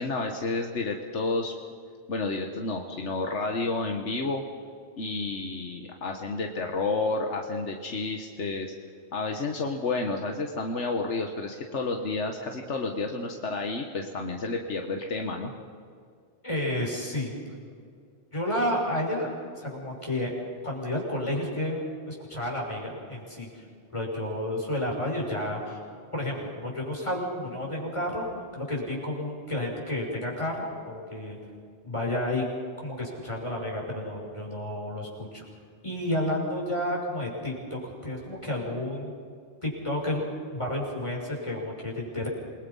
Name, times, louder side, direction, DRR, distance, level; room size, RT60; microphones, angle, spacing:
voice 1, 0.0-1.5 2.1-4.4 5.0-8.7 9.1-15.5, left 3 dB, 80° left, 3 dB, 1.7 m, -30 dB
voice 2, 16.4-17.3 18.3-20.3 20.6-23.6 23.9-25.8 26.1-28.2 28.5-31.4 31.8-32.4 32.8-35.4 35.8-39.1 39.6-40.2 40.5-42.3, left 1 dB, 25° left, -2 dB, 5.8 m, -31 dB
28.0 x 21.5 x 5.5 m, 2.2 s
omnidirectional pair, 1.2 m